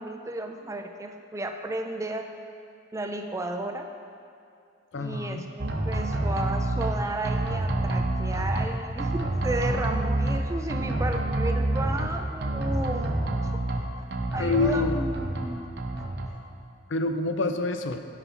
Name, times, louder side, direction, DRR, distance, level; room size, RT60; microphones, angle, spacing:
voice 1, 0.0-2.3 2.9-3.9 4.9-13.3 14.0-14.1 14.3-15.7, right 1 dB, 15° right, 5 dB, 0.3 m, -33 dB
voice 2, 4.9-5.4 14.4-14.9 16.9-18.0, left 3 dB, 65° left, 7 dB, 0.5 m, -26 dB
sound 1, 5.6-6.9 7.2-8.7 9.0-10.4 10.7-12.1 12.4-13.8 14.1-15.4 15.8-16.3, right 1 dB, 55° right, 0.8 m, -27 dB
9.9 x 4.2 x 5.6 m, 2.5 s
head